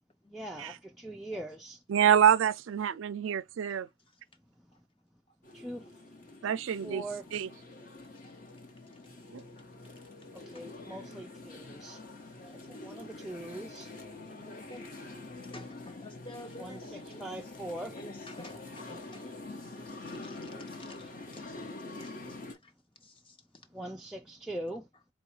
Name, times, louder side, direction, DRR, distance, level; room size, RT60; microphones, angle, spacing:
voice 1, 0.3-1.8 4.6-4.9 5.5-6.3 6.8-7.3 9.5-12.0 12.5-14.2 16.6-18.0 23.7-24.9, right 1 dB, ahead, 0.3 m, -42 dB
voice 2, 1.9-3.9 6.4-7.0 7.3-7.5 9.3-9.4, right 9 dB, 75° right, 0.4 m, -26 dB
sound 1, 5.4-22.5, left 2 dB, 40° left, 1.1 m, -46 dB
voice 3, 12.3-12.8 13.2-13.4 14.3-15.0 15.4-17.4 17.9-19.3 19.9-21.5 22.0-22.4 22.6-22.7 23.0-23.4, left 1 dB, 25° left, 0.7 m, -51 dB
4.1 x 2.3 x 4.4 m
head